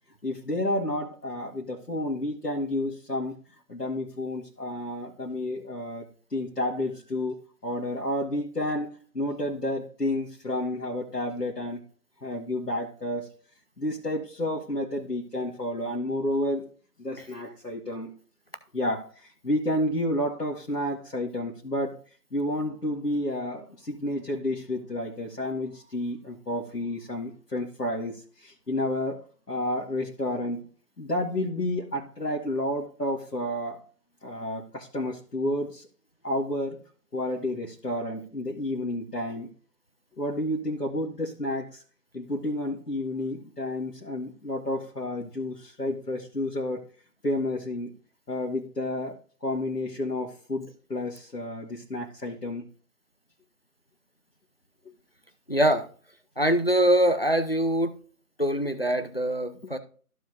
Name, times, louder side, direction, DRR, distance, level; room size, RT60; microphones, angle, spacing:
voice 1, 0.2-3.4 3.7-11.8 12.2-13.3 13.8-16.7 17.0-18.1 18.7-22.0 22.3-30.7 31.0-33.8 34.2-35.9 36.2-36.8 37.1-39.5 40.2-41.8 42.1-46.8 47.2-47.9 48.3-52.7, left 1 dB, 80° left, -2 dB, 1.9 m, -30 dB
voice 2, 55.5-55.9 56.4-58.0 58.4-59.8, right 1 dB, 40° left, 10 dB, 0.7 m, -23 dB
14.5 x 5.0 x 2.6 m, 0.42 s
figure-of-eight pair, 170°, 47 cm